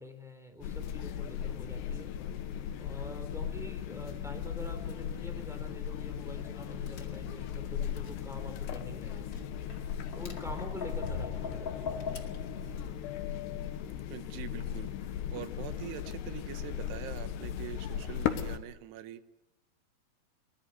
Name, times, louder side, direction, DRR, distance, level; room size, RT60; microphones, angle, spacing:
voice 1, 0.0-2.1 2.8-9.5 10.1-12.0 12.6-12.8, left 1 dB, ahead, 5 dB, 2.5 m, -46 dB
sound 1, 0.6-18.6, left 9 dB, 80° left, 3.3 m, -37 dB
Tap, 6.6-12.9, left 5 dB, 35° left, 2.1 m, -42 dB
voice 2, 14.1-19.2, right 11 dB, 75° right, 11 dB, 3.1 m, -44 dB
21.5 x 20.5 x 8.1 m, 0.91 s
omnidirectional pair, 4.9 m